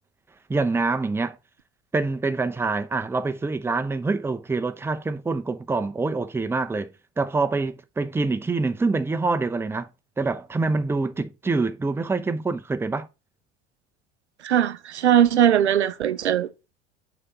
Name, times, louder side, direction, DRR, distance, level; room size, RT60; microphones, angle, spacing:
voice 1, 0.5-1.4 1.9-6.9 7.2-9.9 10.2-13.1, right 3 dB, 5° right, 0.6 m, -25 dB
voice 2, 14.4-16.5, right 10 dB, 80° right, 0.6 m, -20 dB
6.5 x 4.0 x 5.2 m
figure-of-eight pair, 65°, 33 cm